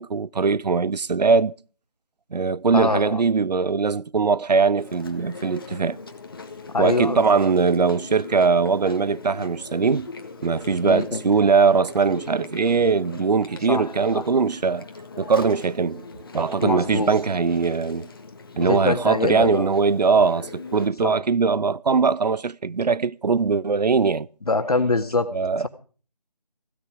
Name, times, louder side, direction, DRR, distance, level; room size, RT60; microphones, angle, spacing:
voice 1, 0.0-1.5 2.3-6.0 6.8-10.1 10.4-14.8 15.2-16.1 16.3-18.1 18.6-24.3 25.3-25.7, right 5 dB, 80° right, 0.6 m, -21 dB
voice 2, 2.7-3.2 6.7-7.2 10.8-11.2 13.7-13.9 14.1-14.2 16.6-17.2 18.6-19.7 21.0-21.1 24.5-25.3, left 3 dB, 65° left, 2.0 m, -24 dB
Chewing mastication, 4.8-20.9, left 4 dB, 35° left, 1.6 m, -41 dB
16.5 x 12.5 x 4.9 m
figure-of-eight pair, 170°, 21 cm